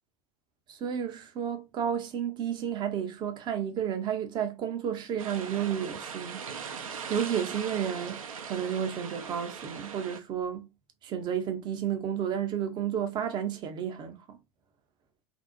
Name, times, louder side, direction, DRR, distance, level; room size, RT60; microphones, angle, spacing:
voice 1, 0.7-6.5 6.7-10.7 11.0-14.4, right 8 dB, 25° right, 0.5 m, -32 dB
sound 1, 5.2-10.2, right 6 dB, 70° right, 0.5 m, -40 dB
2.5 x 2.0 x 2.4 m
figure-of-eight pair, 90°, 18 cm